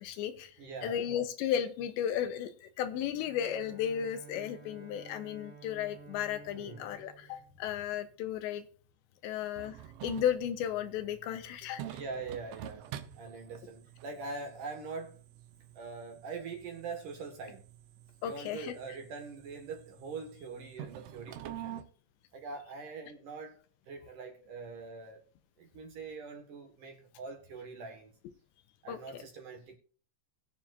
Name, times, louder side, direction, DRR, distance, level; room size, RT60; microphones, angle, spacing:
voice 1, 0.0-0.6 0.8-8.6 9.2-9.8 10.0-11.8 18.2-18.7 28.9-29.2, left 9 dB, 80° left, 2.9 m, -34 dB
voice 2, 0.6-1.1 6.5-6.8 11.8-15.2 15.7-17.6 18.2-21.8 22.3-23.6 23.9-25.2 25.6-28.1 28.8-29.8, right 4 dB, 55° right, 2.6 m, -43 dB
Bowed string instrument, 3.0-8.2, right 4 dB, 20° right, 2.4 m, -53 dB
sound 1, 9.6-21.8, right 11 dB, 80° right, 3.5 m, -48 dB
21.5 x 7.3 x 2.6 m
omnidirectional pair, 5.4 m